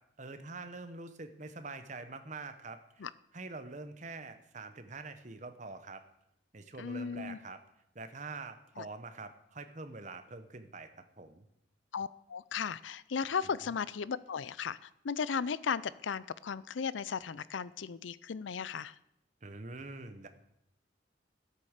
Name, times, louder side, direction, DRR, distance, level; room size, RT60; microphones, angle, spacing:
voice 1, 0.2-3.1 3.3-6.0 6.5-7.6 7.9-10.9 11.2-11.4 19.4-20.3, right 3 dB, 40° right, 9 dB, 1.0 m, -45 dB
voice 2, 6.8-7.4 8.8-8.9 11.9-18.9, left 6 dB, 80° left, 18 dB, 0.5 m, -36 dB
13.0 x 8.5 x 6.6 m, 0.80 s
head